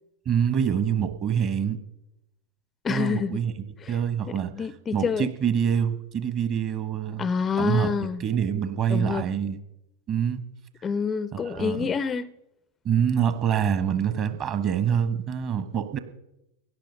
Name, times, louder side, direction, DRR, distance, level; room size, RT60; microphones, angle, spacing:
voice 1, 0.2-1.8 2.9-3.5 3.9-4.5 4.9-7.3 7.6-9.6 10.1-10.4 11.3-11.9 12.8-16.0, right 8 dB, 35° right, 1.2 m, -25 dB
voice 2, 2.8-3.4 3.8-4.0 4.3-5.3 7.2-8.2 8.9-9.3 10.8-12.3, left 6 dB, 20° left, 0.4 m, -27 dB
17.0 x 10.5 x 5.2 m
figure-of-eight pair, 90°, 0 cm